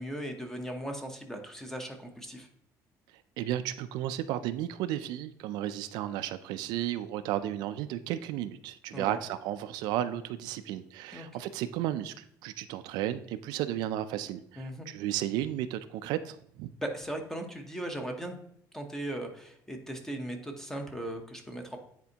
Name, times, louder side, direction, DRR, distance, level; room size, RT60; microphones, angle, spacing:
voice 1, 0.0-2.5 8.9-9.2 11.1-11.4 14.6-14.9 16.8-18.4 18.7-21.8, right 1 dB, 5° left, 4 dB, 0.8 m, -38 dB
voice 2, 3.4-16.7, right 12 dB, 85° right, 11 dB, 0.4 m, -33 dB
9.3 x 4.4 x 2.8 m, 0.72 s
cardioid pair, 150°, 7 cm